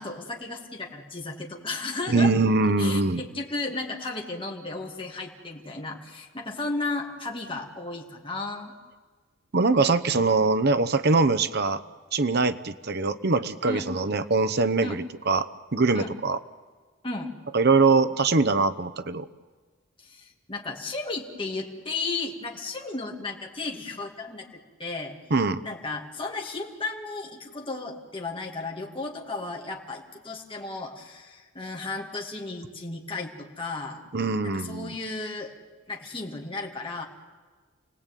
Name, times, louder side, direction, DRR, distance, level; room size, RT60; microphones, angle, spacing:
voice 1, 0.0-2.3 2.8-8.7 13.7-13.8 14.8-15.0 15.9-16.1 17.0-17.3 20.0-25.2 25.6-34.0 34.4-35.5 35.9-37.0, left 3 dB, 25° left, 0 dB, 2.5 m, -34 dB
voice 2, 2.1-3.2 9.5-11.8 12.1-15.5 15.7-16.4 17.5-19.3 25.3-25.6 34.1-35.0, right 3 dB, 50° right, 12 dB, 0.9 m, -23 dB
29.0 x 18.0 x 9.2 m, 1.5 s
head